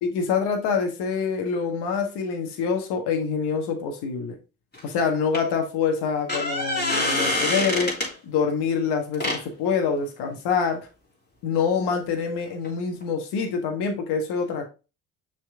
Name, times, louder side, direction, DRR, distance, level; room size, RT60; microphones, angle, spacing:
voice 1, 0.0-4.3 4.8-8.0 8.2-10.8 11.4-14.7, left 5 dB, 65° left, 4 dB, 1.6 m, -26 dB
sound 1, 4.7-4.9 5.3-5.4 6.1-8.1 9.1-9.4 12.6-12.7 13.0-13.1, left 1 dB, 25° left, 3.4 m, -25 dB
6.1 x 4.3 x 3.6 m, 0.31 s
hypercardioid pair, 65°, 43 cm